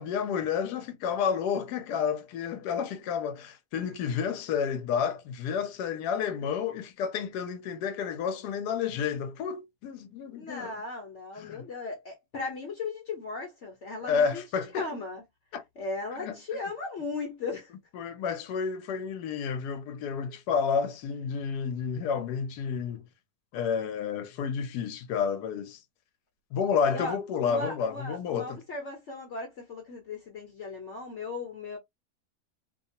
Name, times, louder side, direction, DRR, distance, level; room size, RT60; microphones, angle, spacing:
voice 1, 0.0-10.7 11.4-11.6 14.0-14.9 15.5-15.6 16.2-16.4 17.9-23.1 23.5-25.8 26.5-28.6, left 6 dB, 85° left, 1.2 m, -30 dB
voice 2, 10.3-14.4 14.7-15.2 15.8-17.7 26.9-31.8, left 3 dB, 55° left, 1.0 m, -37 dB
2.8 x 2.3 x 2.6 m
omnidirectional pair, 1.7 m